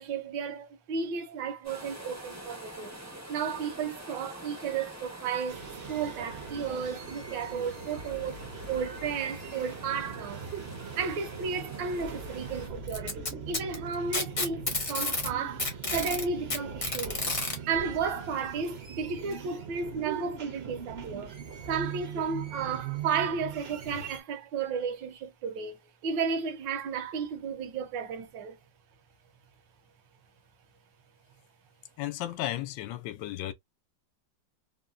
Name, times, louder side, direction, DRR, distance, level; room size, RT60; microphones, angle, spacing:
voice 1, 0.0-3.0 3.3-10.5 11.0-17.2 17.7-21.4 21.7-28.6, right 6 dB, 75° right, 1.4 m, -33 dB
sound 1, 1.6-12.7, right 1 dB, 25° right, 0.3 m, -46 dB
sound 2, 5.5-24.2, right 6 dB, 55° right, 0.7 m, -41 dB
Packing tape duct tape, 12.9-15.3 15.6-17.6 18.7-18.8 19.3-19.4 20.3-20.4, left 2 dB, 35° left, 0.5 m, -30 dB
voice 2, 32.0-33.5, left 13 dB, 75° left, 1.2 m, -34 dB
3.6 x 2.2 x 2.4 m
omnidirectional pair, 2.1 m